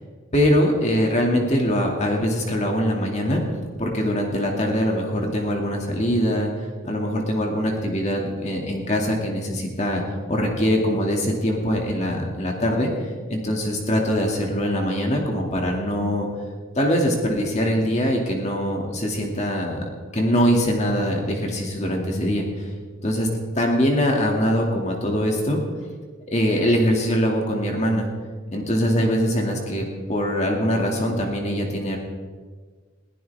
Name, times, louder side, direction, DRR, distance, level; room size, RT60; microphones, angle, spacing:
voice 1, 0.3-3.4 3.8-6.5 6.8-10.0 10.3-12.9 13.3-16.3 16.8-19.8 20.1-22.7 23.0-23.3 23.5-25.6 26.3-28.1 28.5-29.8 30.1-32.0, equal, 35° left, 0 dB, 2.5 m, -22 dB
21.5 x 15.0 x 3.6 m, 1.5 s
head